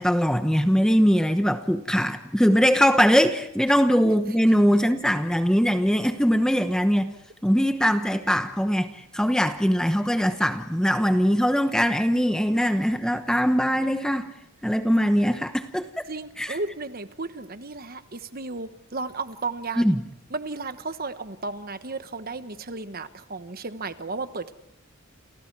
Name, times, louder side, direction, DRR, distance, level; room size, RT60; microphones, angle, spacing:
voice 1, 0.0-7.1 7.4-14.3 14.6-15.9 16.4-16.6 19.8-20.0, equal, 5° left, 8 dB, 1.0 m, -21 dB
voice 2, 16.1-19.9 20.3-24.5, right 3 dB, 45° right, 11 dB, 1.2 m, -34 dB
29.5 x 29.0 x 4.7 m, 0.77 s
head